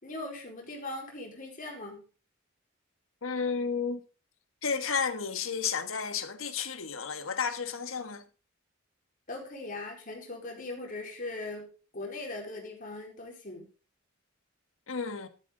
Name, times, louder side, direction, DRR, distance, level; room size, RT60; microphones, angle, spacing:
voice 1, 0.0-2.0 9.3-11.7 11.9-13.7, left 2 dB, 40° left, 4.4 m, -40 dB
voice 2, 3.2-4.0 4.6-8.2 14.9-15.3, left 5 dB, 80° left, 1.4 m, -32 dB
13.0 x 11.0 x 3.8 m
head